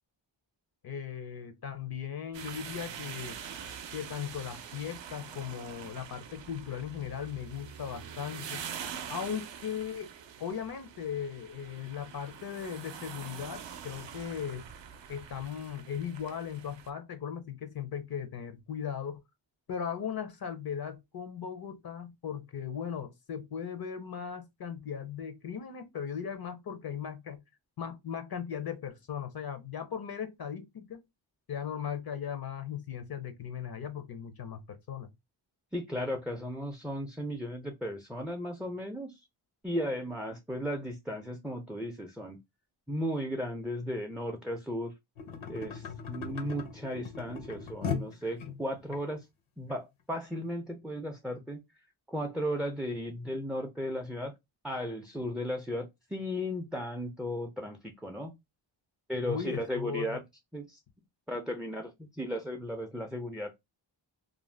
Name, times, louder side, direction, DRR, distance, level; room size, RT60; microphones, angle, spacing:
voice 1, 0.8-3.4 3.9-8.6 9.1-10.1 10.4-14.6 15.1-19.2 19.7-27.4 27.8-31.0 31.5-35.1 59.2-60.2, left 8 dB, 50° left, 0.5 m, -38 dB
sound 1, 2.3-16.9, right 8 dB, 65° right, 0.5 m, -45 dB
voice 2, 35.7-39.1 39.6-42.4 42.9-44.9 45.5-49.3 49.6-51.6 52.1-54.3 54.6-58.4 59.1-60.2 60.5-60.8 61.3-63.6, equal, ahead, 0.3 m, -35 dB
sound 2, 45.2-49.0 49.7-49.8, left 6 dB, 80° left, 0.8 m, -38 dB
2.5 x 2.1 x 3.1 m
wide cardioid pair, 110°, 47 cm